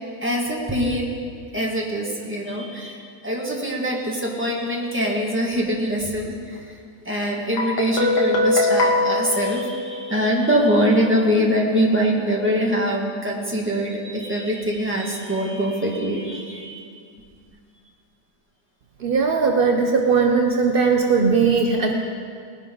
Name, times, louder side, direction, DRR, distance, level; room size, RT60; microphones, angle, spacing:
voice 1, 0.2-1.2 1.5-6.7 7.0-16.9, equal, 5° right, -3 dB, 1.7 m, -23 dB
Guitar, 7.6-10.4, left 2 dB, 85° left, 2.2 m, -22 dB
voice 2, 19.0-21.9, right 5 dB, 65° right, 3 dB, 0.5 m, -19 dB
19.0 x 10.5 x 3.8 m, 2.2 s
omnidirectional pair, 1.8 m